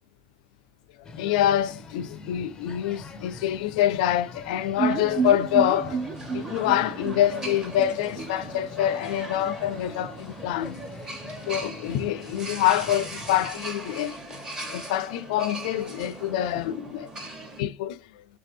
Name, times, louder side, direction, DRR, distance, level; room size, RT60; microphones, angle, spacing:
sound 1, 1.0-13.5, left 3 dB, 20° left, 0.5 m, -44 dB
voice 1, 1.1-6.0 6.3-10.8 11.5-14.4 14.7-17.1 17.6-18.0, left 12 dB, 75° left, 0.4 m, -26 dB
sound 2, 4.8-17.6, right 1 dB, 15° right, 1.1 m, -39 dB
sound 3, 4.8-8.6 8.9-9.0 9.3-9.4, right 5 dB, 30° right, 0.5 m, -30 dB
3.3 x 2.6 x 4.3 m
supercardioid pair, 125°, 4 cm